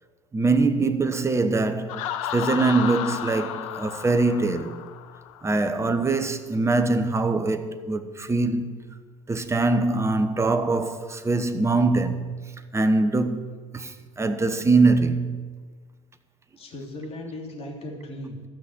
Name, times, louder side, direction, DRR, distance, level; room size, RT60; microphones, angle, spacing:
voice 1, 0.3-4.8 5.4-8.8 9.3-12.4 12.7-15.5, right 3 dB, 15° right, 1.0 m, -23 dB
Laughter, 1.9-5.6, left 10 dB, 75° left, 0.8 m, -33 dB
voice 2, 16.6-18.5, left 1 dB, 35° left, 3.2 m, -37 dB
13.5 x 6.2 x 7.4 m
hypercardioid pair, 75°, 17 cm